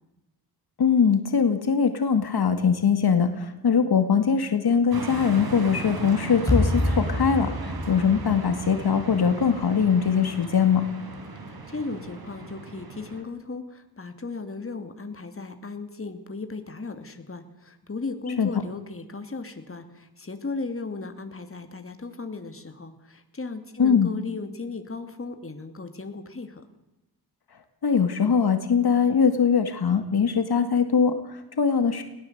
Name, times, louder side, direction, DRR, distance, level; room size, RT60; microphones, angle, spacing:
voice 1, 0.8-10.9 18.4-18.5 23.8-24.1 27.8-32.0, left 6 dB, 75° left, 8 dB, 2.2 m, -22 dB
sound 1, 4.9-13.2, right 3 dB, 65° right, 4.2 m, -36 dB
sound 2, 6.5-9.6, left 1 dB, 10° left, 6.3 m, -27 dB
voice 2, 11.3-26.6, left 3 dB, 35° left, 7 dB, 2.5 m, -36 dB
20.5 x 18.0 x 8.0 m, 0.98 s
wide cardioid pair, 85°, 39 cm